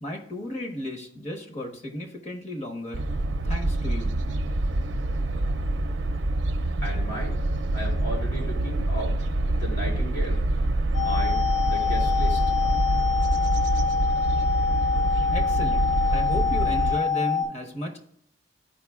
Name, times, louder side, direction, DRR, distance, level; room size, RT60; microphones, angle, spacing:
voice 1, 0.0-3.0 3.4-4.1 15.3-18.0, equal, 40° left, 2 dB, 1.1 m, -34 dB
sound 1, 2.9-17.0, right 1 dB, 85° right, 0.5 m, -26 dB
voice 2, 6.8-7.4 7.7-9.2 9.5-10.4 11.0-12.4, equal, 85° left, -3 dB, 2.7 m, -35 dB
sound 2, 10.9-17.4, left 6 dB, 65° left, 2.8 m, -25 dB
12.0 x 4.8 x 2.4 m, 0.66 s
head